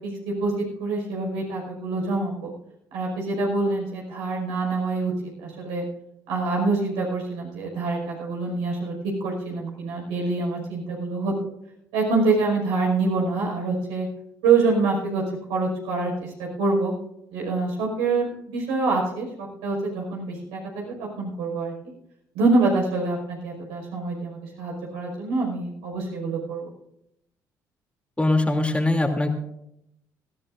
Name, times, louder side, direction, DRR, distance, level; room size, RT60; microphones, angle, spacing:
voice 1, 0.0-2.5 2.9-5.1 5.4-5.8 6.3-8.9 9.2-11.3 11.9-14.1 14.4-15.2 15.5-16.9 17.3-21.7 22.3-26.6, right 3 dB, 75° right, -2 dB, 5.4 m, -25 dB
voice 2, 28.2-29.3, left 2 dB, 10° left, 3 dB, 2.9 m, -21 dB
20.5 x 15.5 x 2.6 m, 0.78 s
hypercardioid pair, 55°, 10 cm